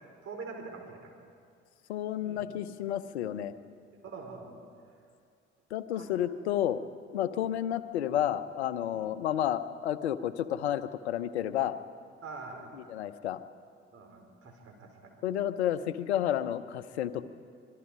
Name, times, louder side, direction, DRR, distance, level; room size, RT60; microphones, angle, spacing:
voice 1, 0.2-1.1 2.2-2.5 4.0-4.5 5.9-6.1 8.9-9.2 12.2-12.7 13.9-15.1 16.3-16.4, right 4 dB, 45° right, 2 dB, 5.0 m, -44 dB
voice 2, 1.9-3.5 5.7-6.8 7.1-11.8 12.9-13.4 15.2-17.2, left 11 dB, 75° left, 13 dB, 0.8 m, -31 dB
25.5 x 23.0 x 5.1 m, 2.2 s
figure-of-eight pair, 50°, 33 cm